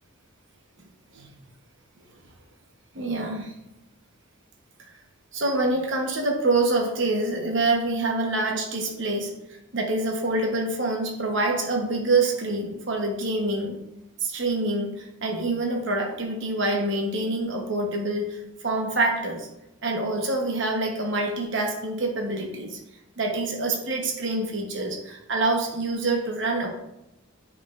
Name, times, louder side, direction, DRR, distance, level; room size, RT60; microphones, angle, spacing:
voice 1, 2.9-3.5 5.3-9.3 9.7-13.8 14.2-19.5 19.8-22.8 23.2-26.7, right 2 dB, 60° right, 2 dB, 1.0 m, -26 dB
8.8 x 4.8 x 2.5 m, 0.89 s
head